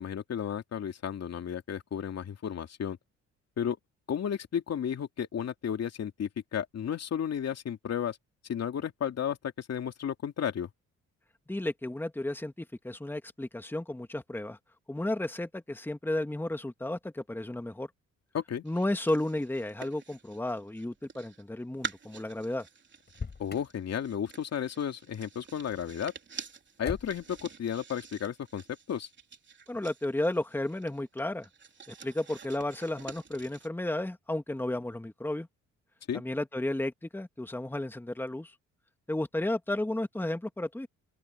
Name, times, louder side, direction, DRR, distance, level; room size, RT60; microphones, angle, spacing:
voice 1, 0.0-3.0 3.6-3.8 4.1-8.2 8.5-10.7 18.3-18.6 23.4-26.1 26.8-29.1 36.1-36.2, left 8 dB, 55° left, 2.7 m, -33 dB
voice 2, 11.5-14.6 14.9-17.9 18.6-22.7 29.7-31.5 31.9-35.5 36.1-38.6 39.1-40.9, left 1 dB, 5° left, 1.9 m, -33 dB
sound 1, 18.7-21.4 21.8-33.7, right 5 dB, 40° right, 3.5 m, -47 dB
Motor vehicle (road), 23.0-23.8 26.8-27.4, left 5 dB, 35° left, 5.3 m, -39 dB
open air
cardioid pair, 90°, 30 cm